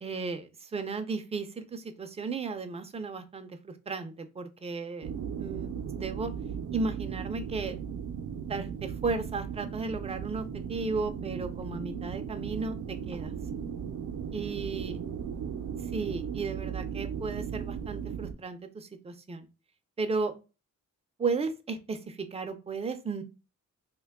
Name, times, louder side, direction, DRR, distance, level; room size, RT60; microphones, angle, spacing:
voice 1, 0.0-5.1 5.4-5.7 6.0-6.3 6.7-7.8 8.5-12.8 13.1-13.3 14.3-15.0 15.9-19.5 20.0-20.3 21.2-23.2, right 4 dB, 20° right, 8 dB, 0.3 m, -34 dB
sound 1, 5.0-18.3, right 7 dB, 75° right, 0.5 m, -36 dB
2.8 x 2.2 x 3.4 m, 0.30 s
wide cardioid pair, 155°, 31 cm